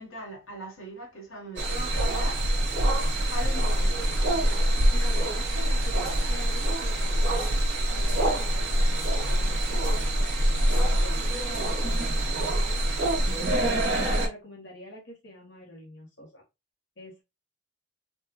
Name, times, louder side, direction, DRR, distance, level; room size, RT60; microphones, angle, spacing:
voice 1, 0.0-2.4 3.3-4.1, right 1 dB, 85° left, 1.2 m, -40 dB
sound 1, 1.6-14.3, right 1 dB, 55° right, 1.1 m, -25 dB
voice 2, 4.7-16.4 17.0-17.2, equal, 60° left, 0.9 m, -46 dB
sound 2, 4.9-5.2 6.0-6.3 7.3-7.7 8.1-8.3 8.9-9.2 9.8-10.2 10.7-10.9 11.5-11.6, equal, 20° left, 1.2 m, -47 dB
3.5 x 2.2 x 2.9 m
head